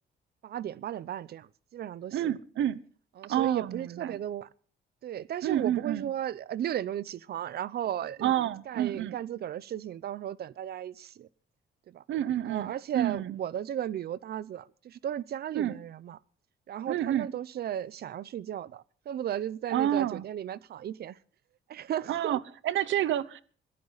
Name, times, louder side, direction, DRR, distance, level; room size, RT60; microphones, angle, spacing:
voice 1, 0.4-2.2 3.2-4.5 5.0-11.3 11.9-12.0 12.4-16.2 16.7-21.2 21.7-22.4, right 10 dB, 50° right, 0.7 m, -35 dB
voice 2, 2.1-2.8 3.3-4.2 5.4-6.1 8.2-9.2 12.1-13.3 15.5-15.8 16.9-17.3 19.7-20.2 22.1-23.4, right 11 dB, 70° right, 1.0 m, -29 dB
21.5 x 14.5 x 4.1 m
cardioid pair, 175°, 20 cm